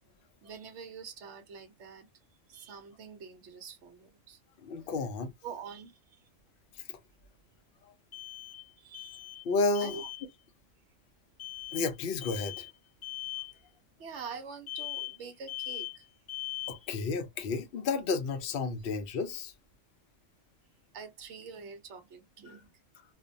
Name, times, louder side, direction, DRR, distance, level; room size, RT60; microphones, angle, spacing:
voice 1, 0.4-2.1 2.5-4.4 4.8-4.9 5.4-6.2 8.8-9.2 9.8-10.1 14.0-16.1 16.7-17.0 20.9-22.7, right 6 dB, 70° right, 0.9 m, -46 dB
voice 2, 4.6-5.3 6.9-7.0 7.8-7.9 9.4-10.0 11.7-12.7 16.7-19.5 22.5-22.6, left 4 dB, 60° left, 0.7 m, -32 dB
sound 1, 4.9-5.0 8.1-8.7 8.9-9.5 9.8-10.3 11.4-11.9 12.2-12.7 13.0-13.5 14.7-15.2 15.5-16.0 16.3-16.9, left 16 dB, 75° left, 1.0 m, -40 dB
2.5 x 2.1 x 2.5 m
omnidirectional pair, 1.3 m